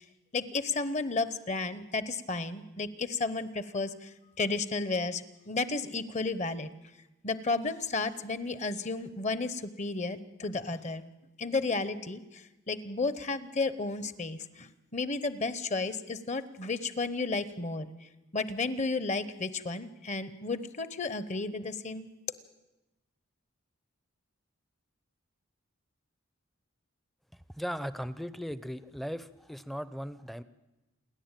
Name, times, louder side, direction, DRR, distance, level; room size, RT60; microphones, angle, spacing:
voice 1, 0.3-6.7 7.2-11.0 11.4-17.9 18.3-22.1, left 3 dB, 35° left, 14 dB, 0.9 m, -33 dB
voice 2, 27.5-30.4, equal, ahead, 15 dB, 0.6 m, -37 dB
28.5 x 11.0 x 9.0 m, 1.0 s
head